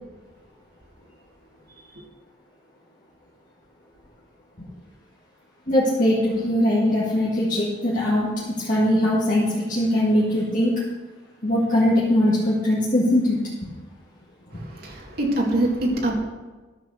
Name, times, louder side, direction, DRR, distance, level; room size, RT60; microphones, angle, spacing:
voice 1, 5.7-8.3 8.6-10.8 11.4-13.4, left 1 dB, 45° left, -8 dB, 1.9 m, -21 dB
voice 2, 14.5-16.1, right 1 dB, 50° right, -1 dB, 2.0 m, -24 dB
12.5 x 4.8 x 6.5 m, 1.3 s
head